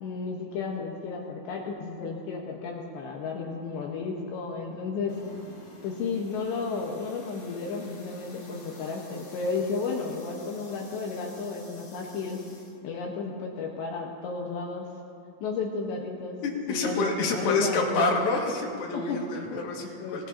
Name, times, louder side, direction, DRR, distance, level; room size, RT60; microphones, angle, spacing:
voice 1, 0.0-5.2 5.8-12.4 12.8-14.9 15.4-16.4 16.7-18.4 18.9-19.2 19.8-20.3, left 4 dB, 70° left, -1 dB, 3.2 m, -33 dB
sound 1, 5.1-12.8, left 2 dB, 35° left, 2.5 m, -51 dB
voice 2, 16.4-20.3, left 2 dB, 90° left, -2 dB, 4.6 m, -28 dB
25.0 x 18.0 x 2.9 m, 2.5 s
omnidirectional pair, 5.6 m